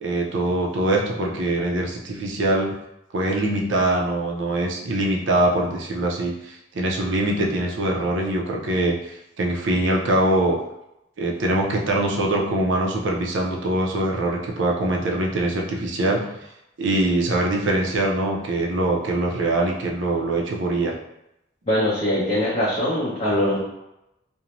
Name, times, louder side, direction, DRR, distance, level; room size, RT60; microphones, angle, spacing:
voice 1, 0.0-2.7 3.1-10.6 11.2-16.2 16.8-20.9, right 1 dB, 75° right, 0 dB, 0.5 m, -23 dB
voice 2, 21.7-23.6, left 1 dB, 30° left, -10 dB, 0.6 m, -22 dB
2.5 x 2.1 x 2.9 m, 0.87 s
head